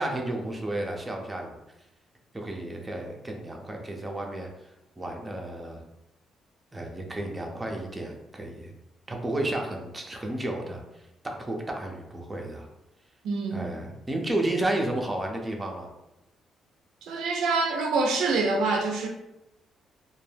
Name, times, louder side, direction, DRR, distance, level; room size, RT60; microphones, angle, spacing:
voice 1, 0.0-1.6 2.3-4.7 5.0-5.8 6.7-8.7 9.1-12.7 13.5-15.9, right 1 dB, 15° right, 1 dB, 0.5 m, -32 dB
voice 2, 13.2-13.7 17.1-19.1, right 3 dB, 85° right, 2 dB, 0.4 m, -26 dB
2.2 x 2.1 x 3.2 m, 0.90 s
cardioid pair, 90°, 0 cm